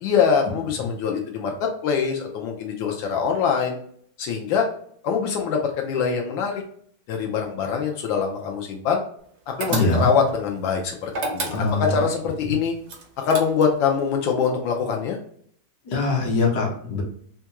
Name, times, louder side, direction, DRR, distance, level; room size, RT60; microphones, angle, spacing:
voice 1, 0.0-3.8 4.2-4.7 5.0-6.6 7.1-9.0 9.5-12.7 13.2-15.2, left 6 dB, 85° left, 1 dB, 1.3 m, -24 dB
sound 1, 9.6-10.3 11.1-12.0 12.9-13.9, right 2 dB, 70° right, 0.6 m, -30 dB
voice 2, 9.7-10.1 11.5-11.9 15.9-17.0, left 3 dB, 60° left, -1 dB, 1.4 m, -22 dB
4.3 x 2.3 x 2.9 m, 0.62 s
omnidirectional pair, 2.1 m